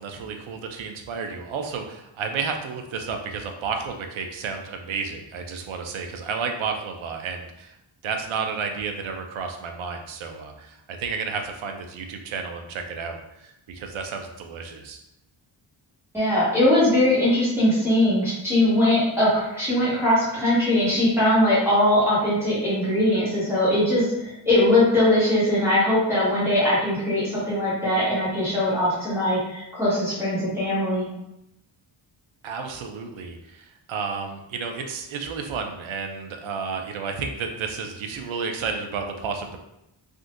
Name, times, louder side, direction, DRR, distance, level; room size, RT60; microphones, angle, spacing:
voice 1, 0.0-7.7 8.0-15.0 32.4-39.6, right 5 dB, 85° right, 4 dB, 0.6 m, -32 dB
voice 2, 16.1-31.1, left 1 dB, 5° right, -11 dB, 1.4 m, -21 dB
3.6 x 2.6 x 2.5 m, 0.86 s
wide cardioid pair, 130°, 46 cm